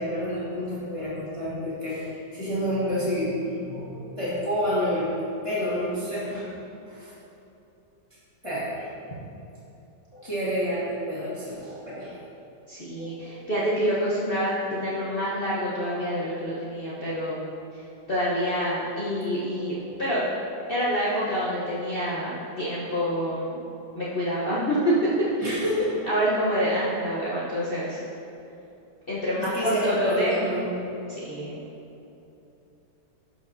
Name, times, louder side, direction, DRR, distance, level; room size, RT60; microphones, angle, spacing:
voice 1, 0.0-5.1 5.4-6.5 6.9-7.1 8.4-8.9 10.1-12.1 13.0-13.4 19.6-20.0 25.4-25.9 29.4-30.7, equal, 20° left, -10 dB, 1.5 m, -29 dB
voice 2, 12.7-17.5 18.1-20.2 20.7-23.6 23.9-24.9 25.4-25.6 26.1-28.0 29.1-30.5 31.1-31.6, equal, 40° left, -9 dB, 1.0 m, -27 dB
11.5 x 4.7 x 2.7 m, 2.9 s
omnidirectional pair, 1.8 m